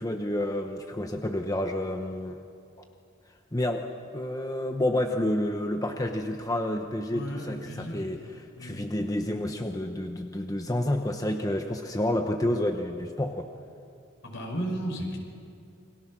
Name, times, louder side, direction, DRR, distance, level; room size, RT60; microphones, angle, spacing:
voice 1, 0.0-2.4 3.5-3.9 4.1-13.5, left 1 dB, 15° left, 4 dB, 1.0 m, -29 dB
voice 2, 7.1-8.1 8.5-8.9 14.2-15.2, right 1 dB, 65° left, 2 dB, 5.3 m, -34 dB
29.0 x 24.0 x 6.1 m, 2.4 s
head